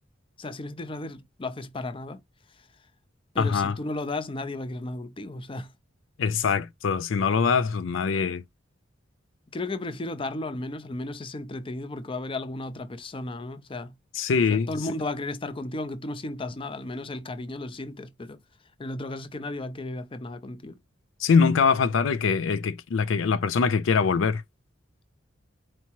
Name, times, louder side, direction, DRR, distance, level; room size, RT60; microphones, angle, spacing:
voice 1, 0.4-2.2 2.6-2.7 3.3-5.7 9.5-13.9 14.5-18.4 18.8-20.8, left 2 dB, 30° left, 0.6 m, -34 dB
voice 2, 3.4-3.7 6.2-8.4 14.1-14.7 21.2-24.4, left 5 dB, 75° left, 0.4 m, -23 dB
4.6 x 2.9 x 2.9 m
head